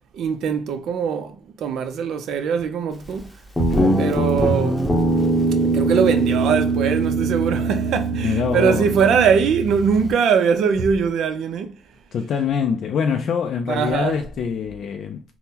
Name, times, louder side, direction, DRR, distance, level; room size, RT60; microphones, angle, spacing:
voice 1, 0.1-3.3 3.6-3.7 4.0-5.0 5.6-11.8 13.7-14.2, right 6 dB, 75° right, 0.5 m, -21 dB
Guitar, 3.6-10.1, right 2 dB, 10° left, 0.7 m, -22 dB
voice 2, 3.7-4.1 8.2-8.9 12.1-15.2, left 7 dB, 65° left, 0.3 m, -24 dB
3.6 x 2.0 x 2.7 m
cardioid pair, 90°, 0 cm